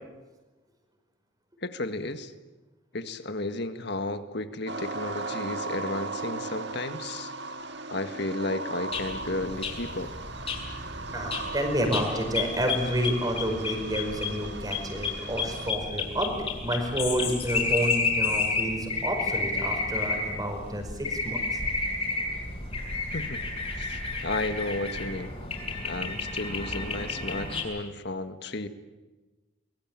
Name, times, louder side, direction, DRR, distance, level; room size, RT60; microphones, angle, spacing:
voice 1, 1.6-2.3 2.9-7.3 7.9-10.1 23.1-23.5 23.8-25.3 25.8-28.7, left 2 dB, 60° left, 9 dB, 1.7 m, -33 dB
sound 1, 4.7-15.7, right 3 dB, 60° right, 1.7 m, -38 dB
sound 2, 8.9-27.6, left 3 dB, 30° left, 6.9 m, -31 dB
voice 2, 11.1-21.6, equal, 20° right, 4 dB, 5.1 m, -29 dB
24.5 x 22.0 x 9.0 m, 1.2 s
head